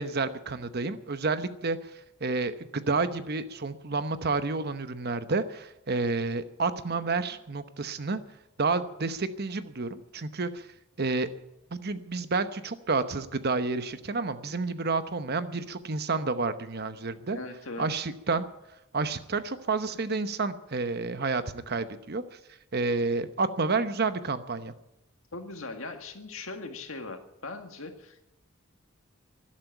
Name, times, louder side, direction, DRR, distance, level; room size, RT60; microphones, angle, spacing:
voice 1, 0.0-1.9 2.2-8.2 8.6-10.7 11.0-11.3 11.7-17.4 17.8-18.5 18.9-22.2 22.7-24.7, right 3 dB, 50° right, 11 dB, 0.9 m, -30 dB
voice 2, 17.3-18.1 25.3-28.3, left 3 dB, 75° left, 6 dB, 1.9 m, -40 dB
12.0 x 12.0 x 9.0 m, 0.87 s
head